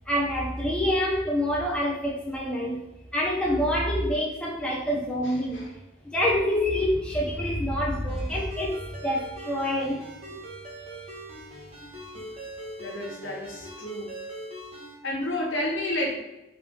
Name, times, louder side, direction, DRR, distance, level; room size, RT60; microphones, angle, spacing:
voice 1, 0.1-2.8 3.1-5.7 6.0-10.0, equal, 5° left, -3 dB, 0.5 m, -26 dB
voice 2, 5.2-5.7 12.1-12.2 12.8-14.1 15.0-16.2, left 1 dB, 75° left, -3 dB, 1.1 m, -31 dB
Ringtone, 8.1-14.9, right 1 dB, 30° right, 1.0 m, -42 dB
3.4 x 3.3 x 3.3 m, 0.96 s
head